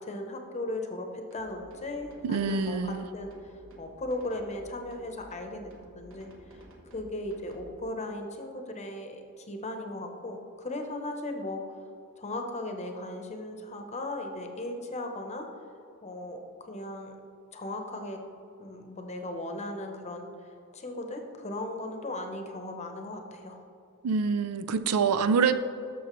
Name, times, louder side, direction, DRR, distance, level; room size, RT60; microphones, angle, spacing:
voice 1, 0.0-3.3 3.8-6.3 6.9-11.8 12.2-15.5 16.0-17.1 17.5-18.2 18.6-20.3 20.7-23.6, left 1 dB, 30° left, 4 dB, 0.8 m, -37 dB
sound 1, 1.3-7.7, right 1 dB, 60° right, 1.1 m, -53 dB
voice 2, 2.2-3.1 24.0-25.6, right 5 dB, 90° right, 12 dB, 0.4 m, -26 dB
12.5 x 6.1 x 3.1 m, 2.7 s
head